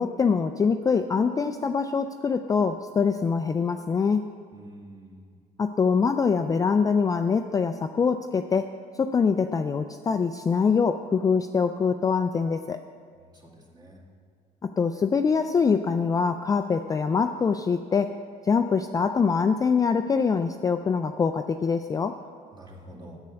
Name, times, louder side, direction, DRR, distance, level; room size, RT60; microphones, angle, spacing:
voice 1, 0.0-4.2 5.6-8.7 9.0-12.8 14.6-18.1 18.4-22.2, left 5 dB, 20° left, 7 dB, 0.3 m, -24 dB
voice 2, 4.5-5.3 13.2-14.0 22.2-23.2, right 1 dB, 25° right, -2 dB, 2.1 m, -47 dB
8.2 x 8.1 x 6.8 m, 2.1 s
cardioid pair, 110°, 17 cm